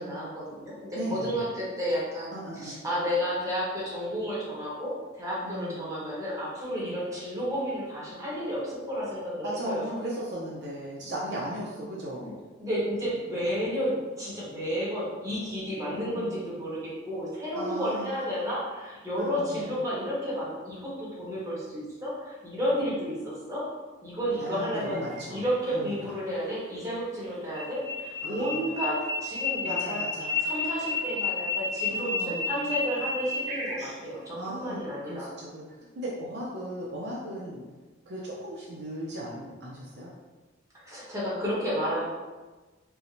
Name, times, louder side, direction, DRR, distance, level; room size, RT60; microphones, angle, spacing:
voice 1, 0.0-10.0 12.2-12.3 12.6-23.6 24.0-25.0 25.3-30.0 30.4-35.2 40.8-42.1, equal, 15° right, -8 dB, 1.1 m, -32 dB
voice 2, 0.9-1.4 2.3-2.7 5.4-5.9 6.8-7.0 9.4-12.3 15.9-16.5 17.5-18.3 19.1-19.7 24.4-25.4 25.7-26.1 28.2-28.7 29.6-30.4 31.9-32.6 34.3-35.6 36.0-37.6 38.1-40.1, right 1 dB, 60° right, -4 dB, 0.6 m, -37 dB
sound 1, 24.9-25.5 27.2-34.2, left 3 dB, 35° right, 0.9 m, -32 dB
4.6 x 2.1 x 2.6 m, 1.3 s
head